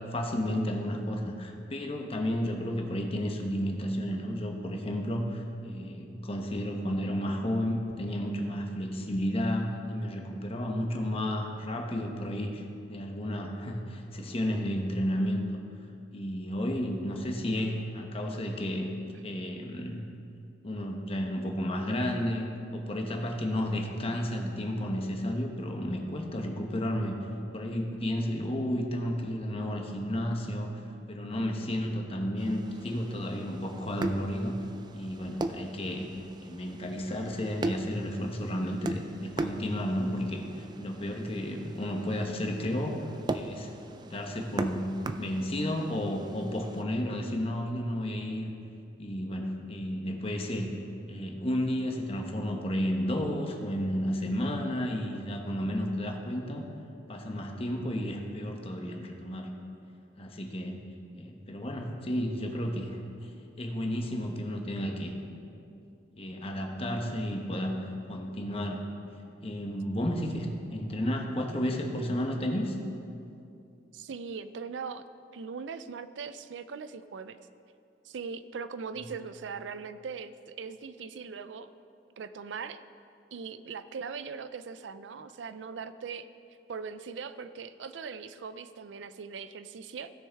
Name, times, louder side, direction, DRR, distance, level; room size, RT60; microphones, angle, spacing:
voice 1, 0.0-15.4 16.1-18.9 19.2-20.1 20.6-22.5 22.7-27.1 27.5-30.7 31.1-34.6 34.9-36.1 36.4-43.7 44.0-44.9 45.2-48.5 49.0-50.7 51.1-56.7 57.1-59.5 60.2-60.8 61.1-63.3 63.6-65.1 66.2-67.8 68.1-68.8 69.4-72.8, equal, 35° left, 2 dB, 1.0 m, -32 dB
sound 1, 32.4-46.8, right 2 dB, 25° right, 0.3 m, -39 dB
voice 2, 73.9-75.0 75.3-77.4 78.0-81.7 82.2-82.8 83.3-86.3 86.7-90.1, right 5 dB, 90° right, 13 dB, 0.4 m, -40 dB
16.5 x 6.2 x 3.5 m, 2.6 s
head